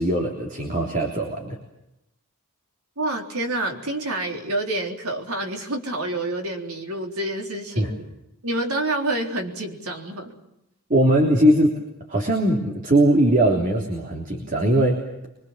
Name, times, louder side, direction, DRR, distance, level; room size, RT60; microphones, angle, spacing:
voice 1, 0.0-1.6 7.8-7.9 10.9-11.8 12.1-15.3, right 1 dB, 40° right, 0 dB, 3.3 m, -20 dB
voice 2, 3.0-8.0 8.4-10.4, right 2 dB, 85° right, 2 dB, 3.8 m, -28 dB
25.0 x 24.0 x 7.5 m, 0.86 s
head